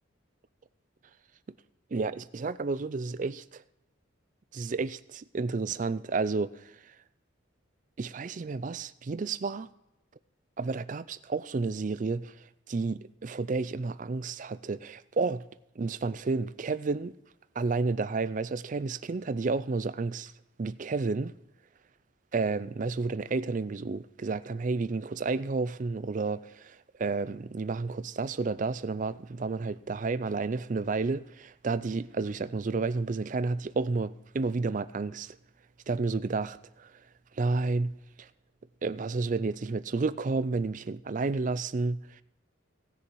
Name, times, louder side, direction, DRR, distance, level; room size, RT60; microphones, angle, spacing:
voice 1, 1.9-3.6 4.5-6.7 8.0-9.7 10.6-12.3 12.7-15.4 15.8-17.2 17.6-20.3 20.6-21.3 22.3-35.4 35.9-36.9 37.4-37.9 38.2-38.3 38.8-42.2, right 3 dB, 40° right, 0.4 m, -31 dB
18.0 x 6.7 x 4.6 m
head